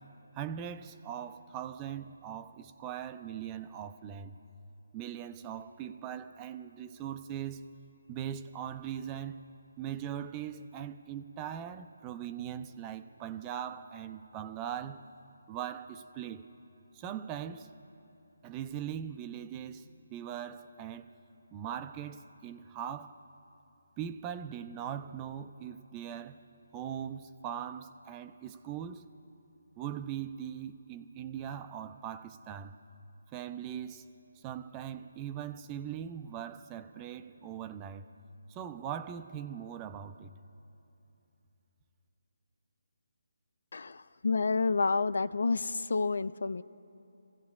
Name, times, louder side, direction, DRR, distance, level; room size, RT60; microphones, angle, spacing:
voice 1, 0.3-4.4 4.9-7.6 8.1-9.4 9.8-15.0 15.5-16.5 16.9-17.7 18.4-21.1 21.5-23.2 24.0-26.4 26.7-29.1 29.8-32.8 33.3-34.1 34.4-38.1 38.5-40.3, right 9 dB, 20° right, 0.5 m, -40 dB
voice 2, 43.7-46.6, left 4 dB, 65° left, 0.4 m, -29 dB
28.0 x 16.0 x 2.4 m
figure-of-eight pair, 155°, 0 cm